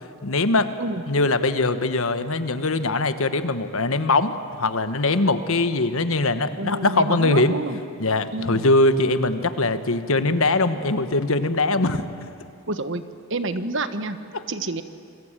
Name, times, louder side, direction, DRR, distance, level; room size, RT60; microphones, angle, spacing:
voice 1, 0.2-0.7 1.1-7.6 8.0-12.0 14.3-14.4, left 2 dB, 70° left, 11 dB, 1.3 m, -21 dB
voice 2, 6.6-7.8 8.3-8.7 12.7-13.0 13.3-14.2 14.5-14.8, right 2 dB, 55° right, 11 dB, 1.3 m, -28 dB
28.0 x 22.0 x 9.0 m, 2.6 s
head